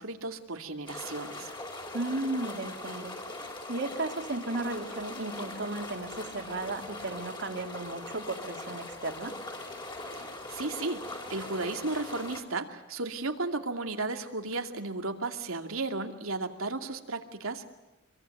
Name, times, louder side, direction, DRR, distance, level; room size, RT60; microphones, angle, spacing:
voice 1, 0.0-1.5 10.5-17.7, right 3 dB, 85° right, 5 dB, 2.5 m, -34 dB
sound 1, 0.9-12.4, left 2 dB, 20° left, 4.5 m, -41 dB
voice 2, 1.9-3.1 3.7-9.3, right 2 dB, 60° right, 4 dB, 2.9 m, -35 dB
26.0 x 23.0 x 9.2 m, 1.0 s
head